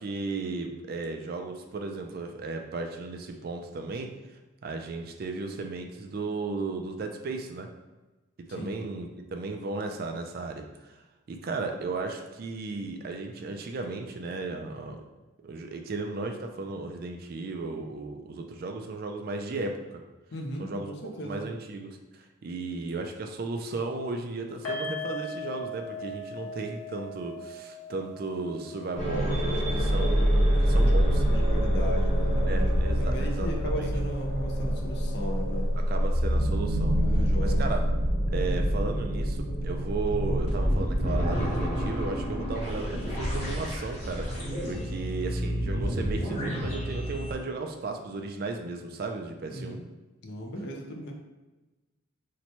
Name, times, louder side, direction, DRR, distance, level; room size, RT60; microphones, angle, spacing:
voice 1, 0.0-7.7 8.5-15.0 15.4-20.0 20.6-20.9 21.2-31.2 32.5-33.9 35.9-37.0 37.4-37.8 38.3-49.8, right 3 dB, 45° right, 4 dB, 0.3 m, -35 dB
voice 2, 8.5-8.8 20.3-21.5 30.8-30.9 31.2-35.7 36.9-37.7 49.5-49.8 50.2-51.1, equal, 55° left, 1 dB, 0.5 m, -37 dB
sound 1, 24.6-31.9 32.1-32.3 32.7-32.8, left 1 dB, 75° left, 1.2 m, -40 dB
sound 2, 28.9-47.3, equal, 35° left, 1.2 m, -26 dB
2.9 x 2.2 x 4.1 m, 1.1 s
head